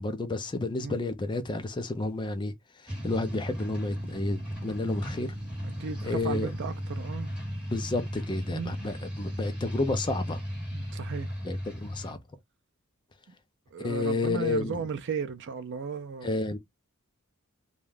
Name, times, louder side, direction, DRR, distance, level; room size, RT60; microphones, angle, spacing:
voice 1, 0.0-2.5 2.8-5.3 6.0-6.5 7.7-10.4 11.4-12.2 13.8-14.8 16.2-16.6, left 2 dB, 20° left, 0.4 m, -31 dB
sound 1, 2.9-12.1, equal, 5° right, 1.4 m, -36 dB
voice 2, 5.6-7.3 8.5-8.8 10.7-11.3 13.7-16.4, right 5 dB, 55° right, 0.4 m, -35 dB
2.4 x 2.2 x 3.2 m
head